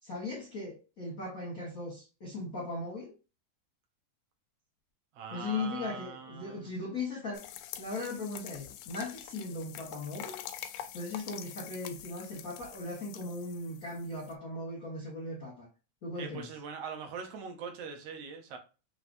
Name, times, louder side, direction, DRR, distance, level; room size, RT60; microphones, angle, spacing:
voice 1, 0.0-3.1 5.3-7.4 7.8-10.4 10.9-15.7 16.0-16.5, left 2 dB, 50° left, 1.1 m, -38 dB
voice 2, 5.1-6.7 16.2-18.6, right 6 dB, 70° right, 1.6 m, -42 dB
sound 1, 7.3-14.3, left 11 dB, 80° left, 2.0 m, -46 dB
6.0 x 3.0 x 2.7 m
omnidirectional pair, 3.6 m